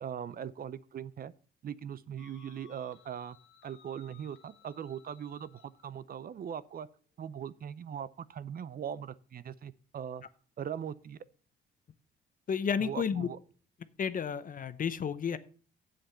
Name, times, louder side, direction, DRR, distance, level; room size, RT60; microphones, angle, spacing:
voice 1, 0.0-1.3 1.6-3.4 3.6-6.9 7.2-10.2 10.6-11.2 12.8-13.4, right 8 dB, 50° right, 17 dB, 0.6 m, -40 dB
sound 1, 2.2-5.9, left 9 dB, 75° left, 1.4 m, -60 dB
voice 2, 12.5-13.3 14.0-15.4, left 7 dB, 45° left, 14 dB, 0.8 m, -31 dB
7.8 x 7.4 x 6.7 m, 0.43 s
cardioid pair, 90°, 20 cm